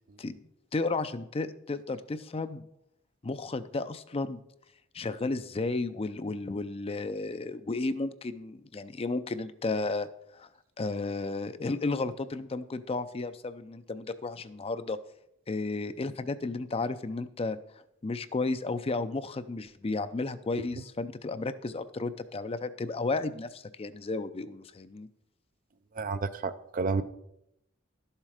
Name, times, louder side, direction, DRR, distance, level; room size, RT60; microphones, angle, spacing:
voice 1, 0.7-2.6 3.2-4.4 4.9-10.1 10.3-10.5 10.8-15.0 15.5-17.6 18.0-25.1, left 3 dB, 30° left, 12 dB, 0.5 m, -33 dB
voice 2, 26.0-27.0, right 4 dB, 45° right, 10 dB, 0.5 m, -30 dB
12.0 x 7.3 x 4.9 m, 0.79 s
head